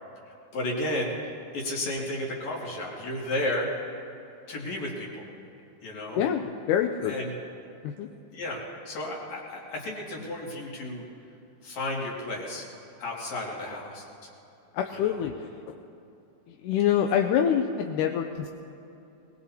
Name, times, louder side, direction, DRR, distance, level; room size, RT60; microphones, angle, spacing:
voice 1, 0.2-1.1 1.5-3.7 4.5-5.2 5.8-6.2 7.0-7.3 8.3-11.0 11.6-12.6 13.0-14.3 14.9-15.2, left 1 dB, 60° left, -3 dB, 3.5 m, -33 dB
voice 2, 6.2-7.2 7.8-8.1 14.7-15.4 16.6-18.5, left 9 dB, 80° left, 5 dB, 2.0 m, -25 dB
21.5 x 20.5 x 2.8 m, 2.8 s
omnidirectional pair, 3.8 m